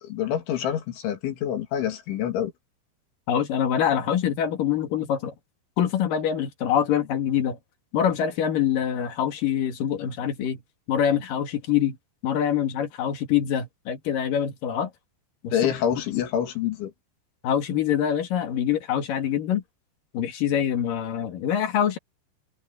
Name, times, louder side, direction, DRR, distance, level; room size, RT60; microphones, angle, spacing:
voice 1, 0.0-2.5 15.5-16.9, left 9 dB, 75° left, 4.8 m, -26 dB
voice 2, 3.3-5.3 5.8-7.6 7.9-10.6 10.9-12.0 12.2-14.9 15.4-15.6 15.9-16.0 17.4-19.6 20.1-22.0, left 9 dB, 55° left, 3.2 m, -25 dB
omnidirectional pair, 5.5 m